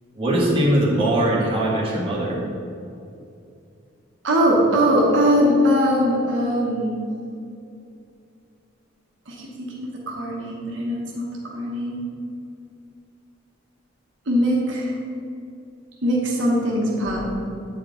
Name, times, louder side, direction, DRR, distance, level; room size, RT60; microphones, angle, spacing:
voice 1, 0.1-2.4, right 1 dB, 30° right, -6 dB, 1.5 m, -21 dB
voice 2, 4.2-7.0 9.3-12.1 14.3-15.0 16.0-17.3, equal, 75° right, -3 dB, 1.0 m, -21 dB
8.5 x 4.4 x 3.8 m, 2.5 s
head